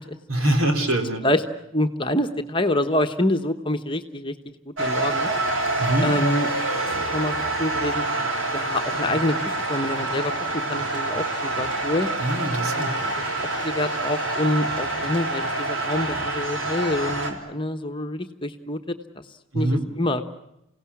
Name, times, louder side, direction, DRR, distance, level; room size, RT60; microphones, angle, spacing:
voice 1, 0.3-1.2 5.8-6.1 12.2-12.9 19.5-19.9, right 1 dB, 80° right, 5 dB, 3.7 m, -23 dB
voice 2, 1.7-4.3 4.7-5.3 6.0-6.5 6.7-8.1 8.5-10.3 10.7-12.1 12.7-13.2 13.6-18.8 19.5-20.3, left 1 dB, 25° left, 7 dB, 1.2 m, -26 dB
sound 1, 4.8-17.3, right 2 dB, 65° right, 3.7 m, -26 dB
28.5 x 17.5 x 9.9 m, 0.86 s
head